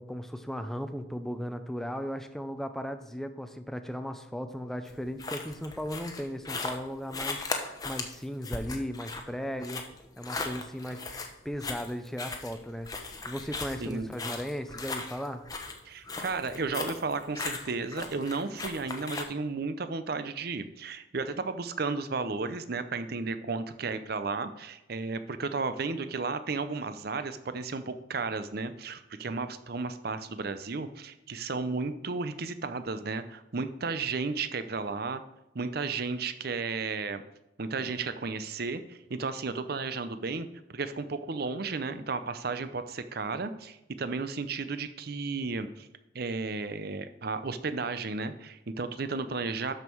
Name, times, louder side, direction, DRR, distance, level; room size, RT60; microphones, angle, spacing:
voice 1, 0.0-9.8 10.2-11.0 11.4-15.4, equal, ahead, 8 dB, 0.5 m, -36 dB
sound 1, 4.9-19.2, left 3 dB, 20° left, 0.9 m, -38 dB
voice 2, 13.8-14.1 15.8-35.2 35.5-37.2 37.6-45.9 46.1-49.7, right 4 dB, 50° right, 11 dB, 0.6 m, -33 dB
12.5 x 5.5 x 4.6 m, 0.90 s
head